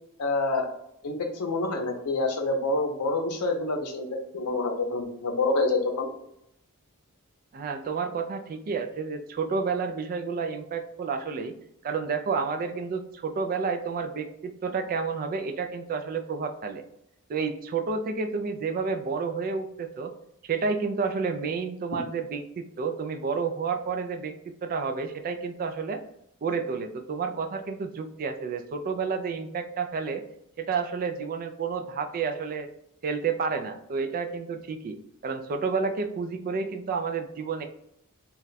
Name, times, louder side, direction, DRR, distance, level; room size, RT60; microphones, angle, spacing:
voice 1, 0.2-0.7 1.0-4.1 4.3-6.1, left 2 dB, 85° left, 4 dB, 0.6 m, -27 dB
voice 2, 7.5-11.5 11.8-16.8 17.3-20.1 20.4-26.0 26.4-30.2 30.6-32.7 33.0-35.0 35.2-37.6, right 5 dB, 40° right, 6 dB, 0.3 m, -30 dB
2.3 x 2.2 x 3.9 m, 0.76 s
head